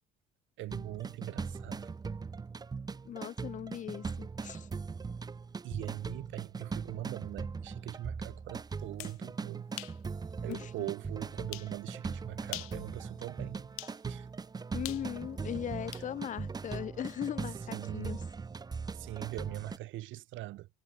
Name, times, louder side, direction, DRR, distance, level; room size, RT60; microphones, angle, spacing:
voice 1, 0.6-1.9 5.6-9.7 10.4-13.7 14.0-14.3 17.7-18.1 18.9-20.7, right 16 dB, 65° right, 1.9 m, -41 dB
sound 1, 0.7-19.8, right 5 dB, 20° right, 1.1 m, -40 dB
voice 2, 3.1-4.7 10.5-10.7 14.7-18.2, left 10 dB, 35° left, 0.7 m, -39 dB
sound 2, 8.8-9.2 9.8-10.0 10.5-10.6 11.5-11.7 12.4-12.8 13.8-14.0 14.8-16.1, left 25 dB, 85° left, 1.2 m, -42 dB
cardioid pair, 140°, 21 cm